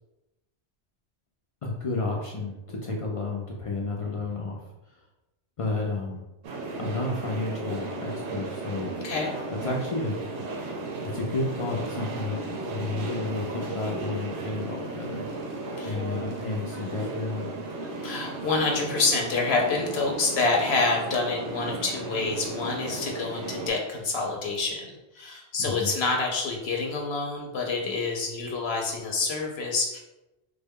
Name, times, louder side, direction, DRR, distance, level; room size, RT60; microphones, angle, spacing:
voice 1, 1.6-4.6 5.6-6.2 6.8-8.9 9.6-10.2 11.1-12.4 12.7-15.2 15.8-17.5 25.6-25.9, left 3 dB, 60° left, -2 dB, 0.3 m, -31 dB
sound 1, 6.4-23.7, right 3 dB, 90° right, 0.9 m, -35 dB
voice 2, 18.0-24.9 25.1-30.0, left 3 dB, 75° left, 0 dB, 0.8 m, -27 dB
3.4 x 2.2 x 3.5 m, 0.97 s
omnidirectional pair, 1.1 m